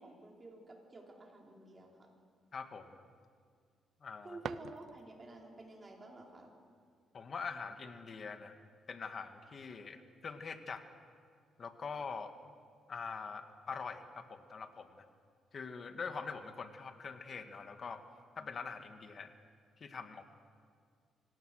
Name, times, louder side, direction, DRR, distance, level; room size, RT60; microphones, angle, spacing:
voice 1, 0.0-2.1 4.2-6.5, right 2 dB, 30° right, 0 dB, 4.7 m, -51 dB
voice 2, 2.5-3.0 4.0-4.4 7.1-8.6 8.9-10.8 11.6-12.3 12.9-15.1 15.5-18.0 18.4-19.3 19.8-20.2, left 5 dB, 45° left, 8 dB, 1.8 m, -44 dB
sound 1, 3.9-5.4, right 8 dB, 65° right, 0.6 m, -46 dB
26.0 x 18.0 x 6.5 m, 2.1 s
cardioid pair, 90°, 0 cm